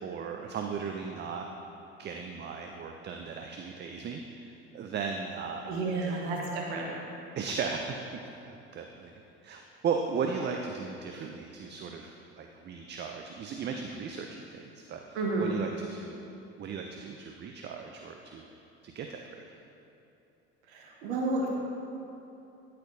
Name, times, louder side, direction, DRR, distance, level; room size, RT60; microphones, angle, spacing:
voice 1, 0.0-1.5 2.0-6.5 7.4-8.0 8.4-9.1 9.4-12.1 12.4-16.2 16.6-18.4 18.8-19.4, right 5 dB, 35° right, 3 dB, 0.5 m, -36 dB
voice 2, 5.6-6.9 15.1-15.5 20.7-21.5, right 2 dB, 85° right, -1 dB, 1.1 m, -31 dB
11.5 x 4.4 x 2.7 m, 2.8 s
hypercardioid pair, 70°, 32 cm